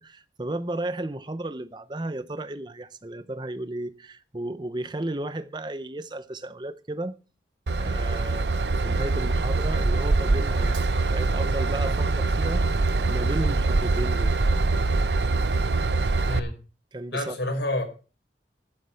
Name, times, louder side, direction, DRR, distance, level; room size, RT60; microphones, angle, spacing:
voice 1, 0.0-7.2 7.8-12.7 13.1-14.4 16.9-17.4, right 1 dB, 25° right, 0.7 m, -34 dB
Train / Engine, 7.7-16.4, right 3 dB, 75° right, 0.7 m, -24 dB
voice 2, 17.1-17.8, left 1 dB, 90° left, 5.5 m, -28 dB
11.5 x 9.0 x 5.7 m
head